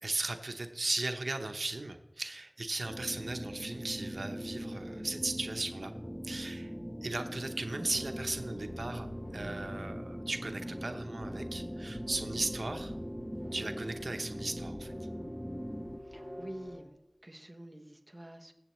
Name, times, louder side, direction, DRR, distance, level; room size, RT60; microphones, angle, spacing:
voice 1, 0.0-5.9 6.2-6.7 7.0-9.1 9.3-12.9 13.5-14.9, right 2 dB, 90° right, 6 dB, 0.7 m, -37 dB
sound 1, 2.8-16.0, equal, 5° right, 0.5 m, -41 dB
sound 2, 7.7-16.8, left 1 dB, 70° left, 4.1 m, -47 dB
voice 2, 16.0-16.9 17.2-18.5, right 1 dB, 25° right, 3 dB, 1.1 m, -48 dB
21.0 x 7.8 x 3.1 m, 0.99 s
wide cardioid pair, 50°, 0 cm